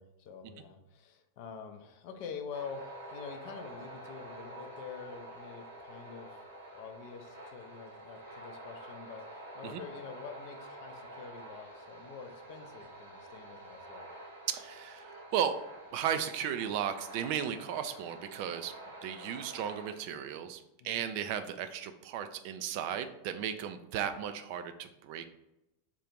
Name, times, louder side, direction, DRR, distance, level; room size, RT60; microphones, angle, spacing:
voice 1, 0.0-6.4 6.7-14.1 20.8-21.0, left 6 dB, 45° left, 6 dB, 0.5 m, -46 dB
sound 1, 2.5-19.9, right 1 dB, 75° right, 1.4 m, -48 dB
voice 2, 14.5-15.6 15.9-18.7 19.0-25.3, right 9 dB, 45° right, 9 dB, 0.3 m, -35 dB
3.7 x 2.4 x 4.5 m, 0.91 s
figure-of-eight pair, 90°, 0 cm